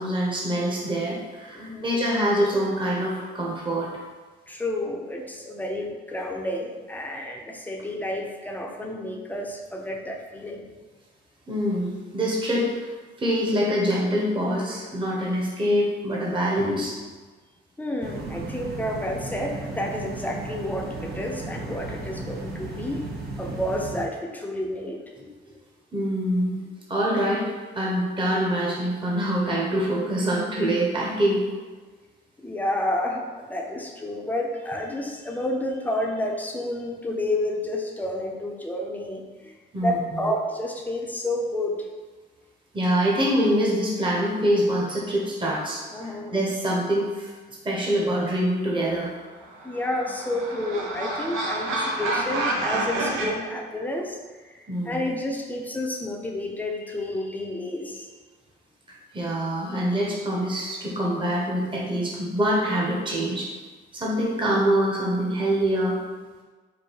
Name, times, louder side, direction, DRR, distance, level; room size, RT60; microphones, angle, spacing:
voice 1, 0.0-3.9 11.5-12.9 13.2-17.0 25.2-25.3 25.9-26.6 26.9-31.4 39.7-40.3 42.7-47.3 47.6-49.1 54.7-55.1 59.1-63.5 63.9-66.0, equal, 25° right, -4 dB, 1.0 m, -25 dB
voice 2, 1.5-1.9 4.5-10.7 17.8-23.0 23.4-25.1 32.4-41.9 45.9-46.4 49.6-54.2 54.4-58.1, left 1 dB, 10° left, 1 dB, 0.6 m, -30 dB
sound 1, 18.0-24.1, right 3 dB, 55° right, 0.9 m, -35 dB
sound 2, 49.4-53.3, right 2 dB, 80° right, 0.8 m, -28 dB
4.9 x 2.2 x 4.6 m, 1.4 s
cardioid pair, 90°, 20 cm